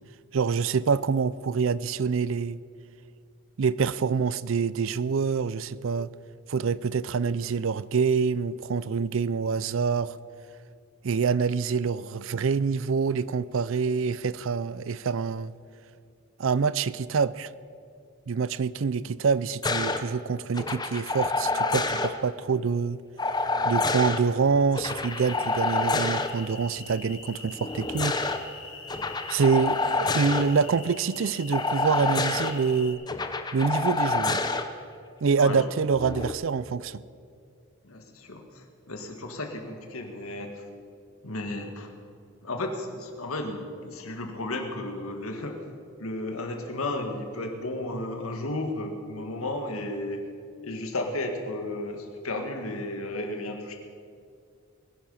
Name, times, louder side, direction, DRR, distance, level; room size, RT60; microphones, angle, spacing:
voice 1, 0.3-2.6 3.6-6.1 6.5-10.2 11.0-15.5 16.4-17.5 18.3-23.0 23.6-28.2 29.3-33.0 33.5-34.5 35.2-37.0, right 5 dB, 70° right, 18 dB, 0.4 m, -26 dB
sound 1, 19.6-20.0 20.5-22.1 23.2-24.2 24.7-26.3 27.6-28.4 28.9-30.4 31.5-32.5 33.1-34.6 35.9-36.3, left 3 dB, 20° left, 0.7 m, -27 dB
sound 2, 25.0-32.9, left 4 dB, 60° left, 2.7 m, -44 dB
voice 2, 37.8-40.6 41.2-41.9 42.4-45.6 46.0-50.3 50.6-53.7, left 2 dB, 85° left, 4 dB, 1.9 m, -33 dB
21.0 x 10.5 x 5.6 m, 2.3 s
head